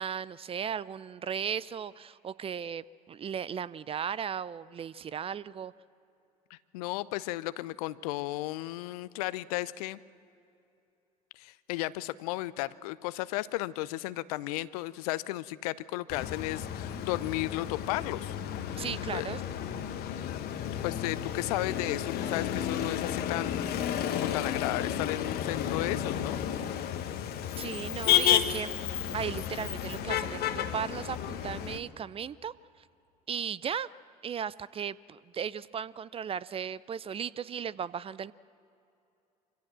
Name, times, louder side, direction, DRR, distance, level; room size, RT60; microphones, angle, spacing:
voice 1, 0.0-5.7 18.8-19.4 27.6-28.7 29.1-32.8 33.3-33.9 34.2-38.3, right 8 dB, 30° right, 19 dB, 0.5 m, -36 dB
voice 2, 6.5-10.0 11.4-18.3 19.1-19.3 20.8-26.4, left 18 dB, 70° left, 18 dB, 0.6 m, -34 dB
Motor vehicle (road), 16.1-31.8, left 10 dB, 50° left, 1.2 m, -32 dB
25.0 x 16.0 x 7.6 m, 2.8 s
hypercardioid pair, 70°, 20 cm